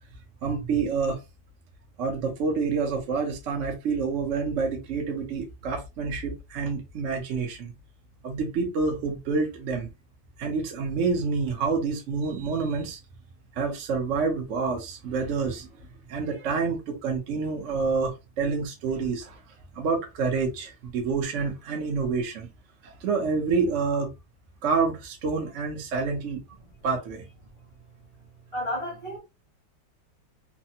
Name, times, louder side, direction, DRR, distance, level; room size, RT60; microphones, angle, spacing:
voice 1, 0.4-1.2 2.0-7.7 8.2-9.9 10.4-13.0 13.6-15.7 16.1-19.4 19.7-22.5 22.8-24.1 24.6-26.4 26.8-27.2, right 4 dB, 70° right, 0.7 m, -28 dB
voice 2, 28.5-29.2, left 1 dB, 25° right, 0.6 m, -31 dB
3.3 x 2.1 x 2.7 m
omnidirectional pair, 2.2 m